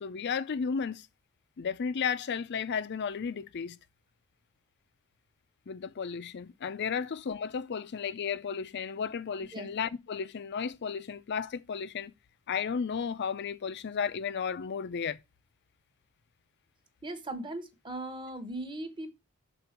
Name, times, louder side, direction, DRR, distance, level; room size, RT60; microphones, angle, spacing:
voice 1, 0.0-1.1 1.6-3.8 5.7-12.1 12.5-15.2, left 6 dB, 55° left, 0.4 m, -33 dB
voice 2, 17.0-19.1, right 1 dB, 20° right, 0.9 m, -38 dB
6.1 x 3.9 x 5.7 m
head